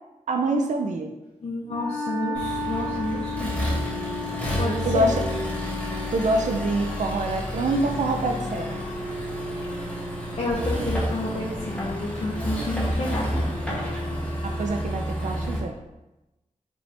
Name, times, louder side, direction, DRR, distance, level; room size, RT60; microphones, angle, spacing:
voice 1, 0.3-1.1 4.9-5.2 6.1-8.8 14.4-15.8, right 2 dB, 65° right, 4 dB, 0.4 m, -25 dB
voice 2, 1.4-3.7 4.6-5.1 10.4-13.5, left 1 dB, 50° left, -5 dB, 0.6 m, -30 dB
Wind instrument woodwind instrument, 1.6-7.0, left 3 dB, 10° right, 1.3 m, -33 dB
Accelerating revving vroom, 2.3-15.6, equal, 10° left, 1.0 m, -30 dB
5.2 x 2.7 x 3.3 m, 0.99 s
wide cardioid pair, 95°, 13 cm